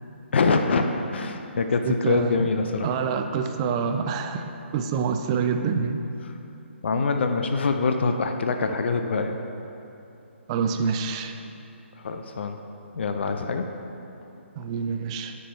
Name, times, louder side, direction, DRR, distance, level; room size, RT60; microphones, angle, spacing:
voice 1, 0.3-2.9 6.8-9.4 12.0-12.6 12.9-13.7, left 4 dB, 60° left, 6 dB, 0.5 m, -24 dB
voice 2, 1.9-2.5 2.8-4.4 4.7-6.0 10.5-11.4 14.6-15.4, right 6 dB, 25° right, 7 dB, 0.4 m, -26 dB
9.7 x 4.5 x 4.4 m, 2.9 s
figure-of-eight pair, 145°, 7 cm